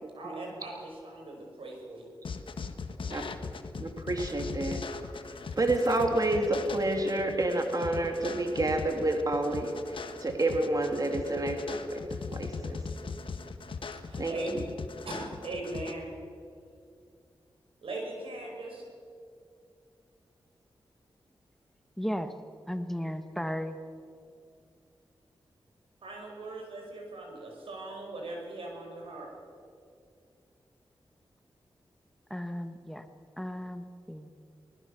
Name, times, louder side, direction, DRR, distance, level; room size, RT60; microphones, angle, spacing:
voice 1, 0.1-2.1 2.9-3.1 13.9-14.5 15.0-16.1 17.8-18.8 26.0-29.3, right 2 dB, 85° right, 0 dB, 5.6 m, -40 dB
sound 1, 2.2-15.9, left 5 dB, 70° left, 1.4 m, -39 dB
voice 2, 3.8-4.8 5.3-12.8 14.2-14.7, right 2 dB, 40° right, 4 dB, 2.4 m, -29 dB
voice 3, 22.0-22.3 22.7-23.8 32.3-33.1 33.4-34.3, equal, 5° left, 9 dB, 1.1 m, -35 dB
24.0 x 19.5 x 6.9 m, 2.3 s
cardioid pair, 75°, 9 cm